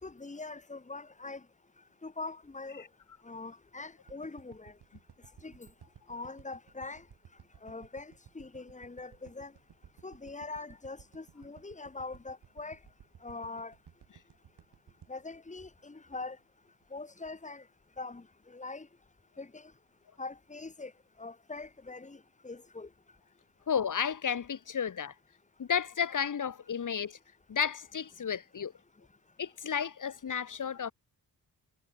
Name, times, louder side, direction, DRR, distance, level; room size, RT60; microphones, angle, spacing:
voice 1, 0.0-1.4 2.0-2.8 3.2-4.7 5.4-5.7 6.1-7.0 7.6-9.5 10.0-12.8 13.2-13.7 15.1-16.4 16.9-17.6 18.0-18.9 19.4-19.7 20.2-20.9 21.2-22.9, left 3 dB, 20° left, 3.3 m, -43 dB
sound 1, 4.1-16.4 16.8-16.9, right 8 dB, 80° right, 5.9 m, -57 dB
voice 2, 23.7-25.1 25.6-27.2 27.5-28.7 29.4-30.9, left 7 dB, 50° left, 2.3 m, -32 dB
wide cardioid pair, 165°, 39 cm